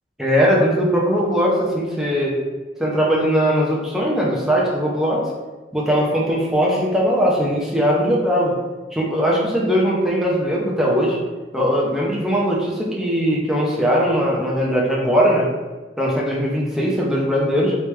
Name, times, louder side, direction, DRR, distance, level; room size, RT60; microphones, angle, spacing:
voice 1, 0.2-2.4 2.8-5.2 5.7-8.5 8.9-11.2 11.5-15.5 16.0-17.8, equal, ahead, -4 dB, 0.7 m, -19 dB
3.3 x 3.2 x 3.1 m, 1.2 s
head